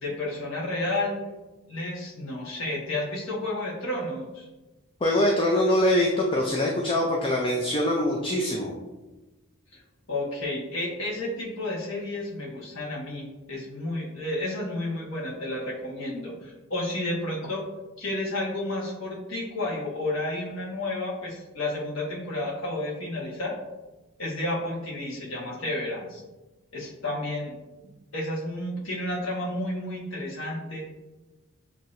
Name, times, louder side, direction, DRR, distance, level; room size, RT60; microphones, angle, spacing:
voice 1, 0.0-1.2 1.7-4.5 10.1-17.6 18.0-23.5 24.2-26.2 26.7-27.5 28.1-30.8, left 1 dB, 60° left, -4 dB, 1.3 m, -31 dB
voice 2, 5.0-8.8, left 1 dB, 25° left, -1 dB, 0.4 m, -23 dB
7.1 x 2.8 x 2.6 m, 1.1 s
head